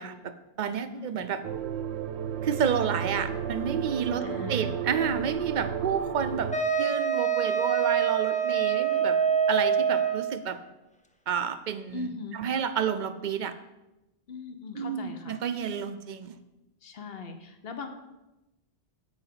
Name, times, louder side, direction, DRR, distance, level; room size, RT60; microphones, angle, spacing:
voice 1, 0.0-1.4 2.4-9.2 9.5-10.6 11.3-13.6 14.7-16.4, right 7 dB, 55° right, 10 dB, 0.6 m, -30 dB
voice 2, 0.9-1.3 4.2-4.8 11.9-12.4 14.3-15.4 16.8-17.9, left 5 dB, 65° left, 7 dB, 1.1 m, -39 dB
sound 1, 1.4-6.6, right 8 dB, 80° right, 0.9 m, -33 dB
Wind instrument woodwind instrument, 6.5-10.4, right 7 dB, 10° left, 0.4 m, -25 dB
7.9 x 4.9 x 5.8 m, 0.98 s
omnidirectional pair, 1.1 m